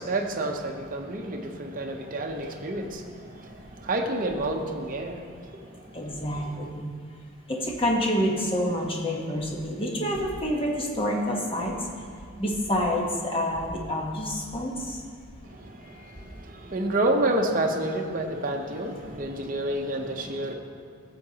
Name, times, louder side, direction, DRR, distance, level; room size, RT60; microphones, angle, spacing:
voice 1, 0.0-6.7 15.4-20.5, right 1 dB, 40° right, 2 dB, 0.7 m, -30 dB
voice 2, 5.9-6.9 7.5-12.1 12.4-15.0, equal, 25° left, 0 dB, 1.0 m, -28 dB
13.5 x 7.9 x 2.8 m, 2.2 s
head